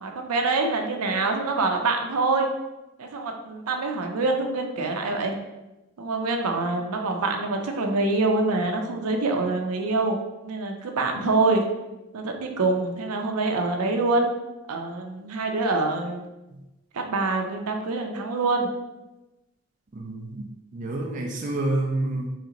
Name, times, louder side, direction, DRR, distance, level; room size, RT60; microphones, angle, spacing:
voice 1, 0.0-2.5 3.0-5.4 6.0-10.2 10.4-11.6 12.1-14.3 14.7-16.3 16.9-18.7, right 3 dB, 85° right, 3 dB, 0.5 m, -25 dB
voice 2, 19.9-20.4 20.7-22.3, right 2 dB, 35° right, 0 dB, 0.4 m, -28 dB
3.2 x 2.9 x 3.8 m, 1.0 s
head